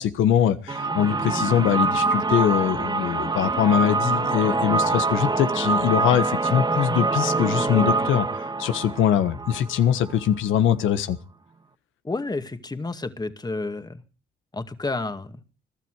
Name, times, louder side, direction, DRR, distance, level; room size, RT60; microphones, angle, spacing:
voice 1, 0.0-11.2, left 9 dB, 85° left, 1.4 m, -22 dB
sound 1, 0.7-10.4, right 3 dB, 20° right, 1.6 m, -25 dB
voice 2, 12.0-14.0 14.5-15.4, left 3 dB, 20° left, 2.1 m, -30 dB
22.5 x 12.5 x 4.9 m
cardioid pair, 90°, 20 cm